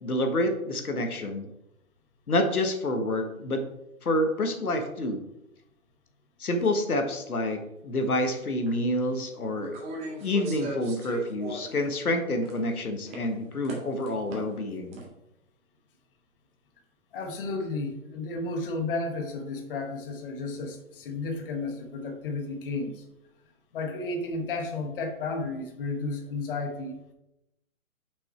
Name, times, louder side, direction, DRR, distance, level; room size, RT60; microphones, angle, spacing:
voice 1, 0.0-1.5 2.3-3.6 4.0-5.2 6.4-9.8 10.2-15.0, left 1 dB, 85° left, 5 dB, 1.4 m, -28 dB
sound 1, 8.7-8.8 9.6-11.8 12.2-12.7 13.1-13.2 13.6-14.6 14.9-15.0, right 1 dB, 15° right, 1.2 m, -38 dB
voice 2, 17.1-23.0 23.7-27.1, left 3 dB, 40° left, 4 dB, 1.2 m, -33 dB
6.2 x 5.5 x 4.3 m, 0.89 s
hypercardioid pair, 145°, 43 cm